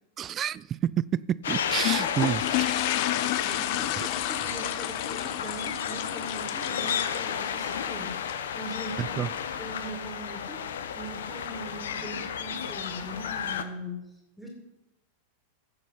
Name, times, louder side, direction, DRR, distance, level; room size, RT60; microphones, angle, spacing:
voice 1, 0.2-2.8 4.0-4.1 9.0-9.3, right 10 dB, 30° right, 0.3 m, -29 dB
sound 1, 1.4-13.6, left 8 dB, 60° left, 0.9 m, -32 dB
sound 2, 1.8-8.4, left 16 dB, 45° left, 0.5 m, -32 dB
voice 2, 3.4-8.2 8.5-9.2 9.6-10.6 10.9-14.0 14.4-14.5, equal, ahead, 2.3 m, -40 dB
15.5 x 7.0 x 5.8 m
figure-of-eight pair, 90°, 0 cm